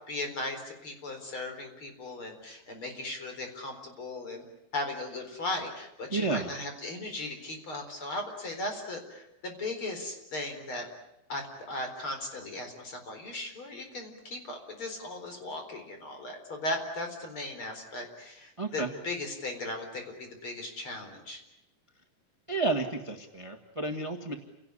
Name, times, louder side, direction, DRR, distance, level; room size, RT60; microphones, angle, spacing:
voice 1, 0.1-4.4 4.7-10.8 11.3-21.4, left 2 dB, 40° left, 5 dB, 4.9 m, -37 dB
voice 2, 6.1-6.5 18.6-18.9 22.5-24.3, right 3 dB, 30° right, 5 dB, 0.5 m, -31 dB
29.0 x 18.0 x 9.9 m, 0.89 s
omnidirectional pair, 3.9 m